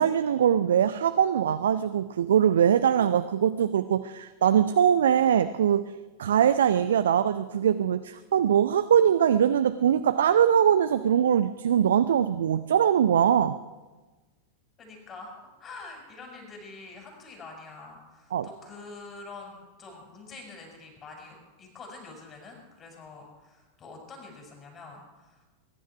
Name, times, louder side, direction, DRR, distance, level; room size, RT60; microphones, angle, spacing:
voice 1, 0.0-5.9 6.2-13.6 18.3-18.5, right 9 dB, 65° right, 12 dB, 0.5 m, -22 dB
voice 2, 14.8-15.3 15.6-25.5, left 3 dB, 25° left, 1 dB, 5.7 m, -46 dB
21.0 x 11.0 x 6.0 m, 1.2 s
figure-of-eight pair, 90°, 0 cm